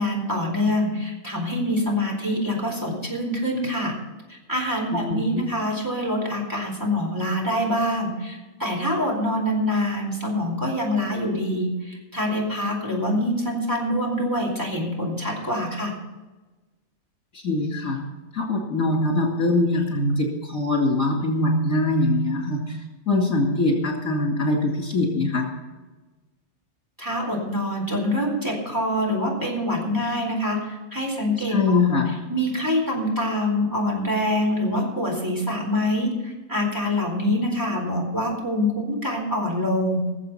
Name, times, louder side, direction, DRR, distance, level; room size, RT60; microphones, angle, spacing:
voice 1, 0.0-4.0 4.3-15.9 27.0-31.8 32.3-40.0, left 1 dB, 15° right, -2 dB, 4.2 m, -25 dB
voice 2, 4.9-5.4 17.3-18.0 18.3-22.8 23.1-25.5 31.5-32.2, left 2 dB, 70° left, 0 dB, 3.1 m, -23 dB
19.5 x 7.5 x 5.8 m, 1.2 s
omnidirectional pair, 1.5 m